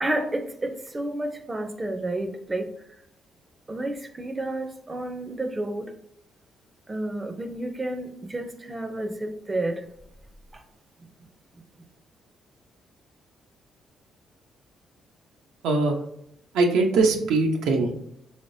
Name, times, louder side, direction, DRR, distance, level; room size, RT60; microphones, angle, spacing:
voice 1, 0.0-2.7 3.7-5.9 6.9-9.8 10.5-10.6, right 1 dB, 20° right, 7 dB, 0.5 m, -30 dB
voice 2, 15.6-16.0 16.5-18.1, right 3 dB, 85° right, 2 dB, 0.7 m, -22 dB
4.5 x 3.4 x 2.6 m, 0.76 s
cardioid pair, 90°, 0 cm